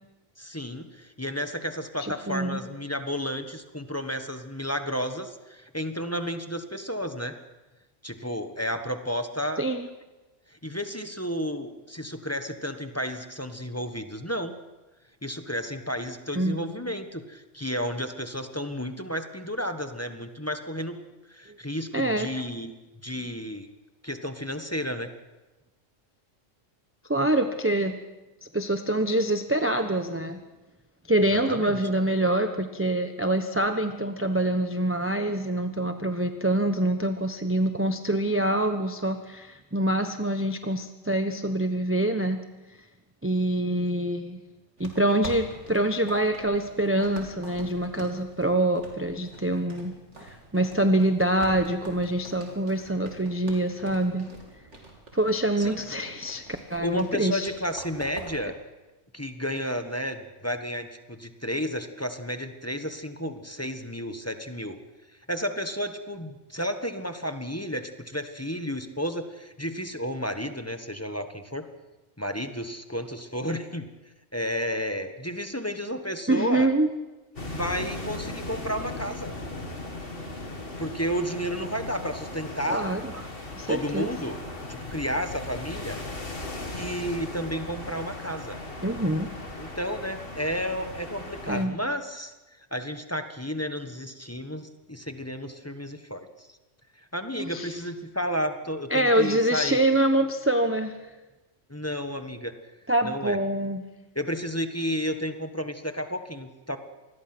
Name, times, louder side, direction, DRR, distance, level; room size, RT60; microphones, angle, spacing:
voice 1, 0.4-7.4 8.0-9.6 10.5-14.5 15.2-21.0 21.3-22.7 23.0-23.7 24.0-25.1 31.3-31.8 55.6-55.8 56.8-58.5 59.1-64.8 65.3-71.7 72.2-73.9 74.3-76.7 77.4-79.4 80.8-83.3 83.7-84.4 84.7-86.0 86.7-88.6 89.6-96.5 96.9-99.8 101.7-102.5 103.0-103.4 104.1-106.8, equal, 10° left, 7 dB, 1.3 m, -32 dB
voice 2, 2.0-2.7 9.6-9.9 16.3-16.6 21.5-21.6 21.9-22.3 27.1-28.0 28.5-30.4 31.1-42.4 43.2-44.4 44.8-49.9 50.2-54.3 55.1-56.4 56.7-57.5 76.3-76.9 82.7-83.0 83.6-84.1 88.8-89.3 91.5-91.7 97.4-97.7 98.9-100.9 102.9-103.8, right 1 dB, 10° right, 6 dB, 0.9 m, -25 dB
sound 1, 44.8-58.5, right 2 dB, 65° right, 3.6 m, -46 dB
sound 2, 77.4-91.7, left 2 dB, 45° left, 2.7 m, -37 dB
26.5 x 20.5 x 6.1 m, 1.1 s
omnidirectional pair, 1.3 m